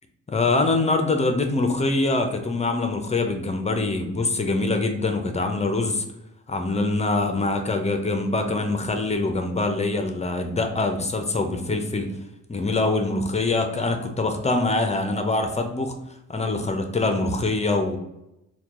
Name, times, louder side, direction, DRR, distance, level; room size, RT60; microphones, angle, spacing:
voice 1, 0.3-6.0 6.5-12.1 12.5-15.9 16.3-18.0, left 2 dB, 20° left, 5 dB, 0.6 m, -24 dB
4.4 x 2.3 x 3.6 m, 0.89 s
cardioid pair, 90°, 30 cm